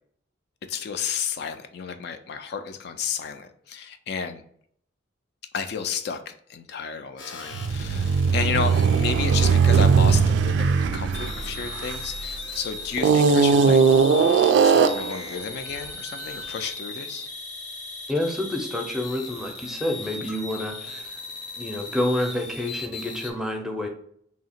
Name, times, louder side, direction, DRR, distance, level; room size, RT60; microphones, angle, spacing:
voice 1, 0.7-4.4 5.5-13.8 14.6-17.3, left 6 dB, 60° left, 8 dB, 0.3 m, -32 dB
sound 1, 7.2-10.2 11.1-23.3, left 4 dB, 85° left, 0.8 m, -38 dB
sound 2, 7.5-12.4 13.0-15.2, right 5 dB, 70° right, 0.3 m, -19 dB
voice 2, 18.1-21.2 21.6-23.9, left 1 dB, 5° right, 3 dB, 0.5 m, -28 dB
2.8 x 2.8 x 4.2 m, 0.65 s
head